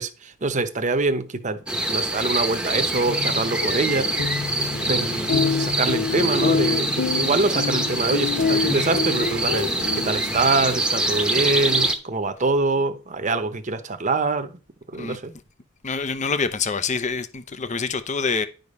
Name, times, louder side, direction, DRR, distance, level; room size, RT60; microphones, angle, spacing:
voice 1, 0.0-4.0 4.8-14.6 14.9-15.3, right 3 dB, 35° right, 0.9 m, -25 dB
sound 1, 1.7-12.0, right 2 dB, 5° right, 0.9 m, -25 dB
sound 2, 2.9-10.5, left 5 dB, 80° left, 0.6 m, -27 dB
voice 2, 15.8-18.5, left 5 dB, 35° left, 0.7 m, -26 dB
10.5 x 5.1 x 5.4 m
head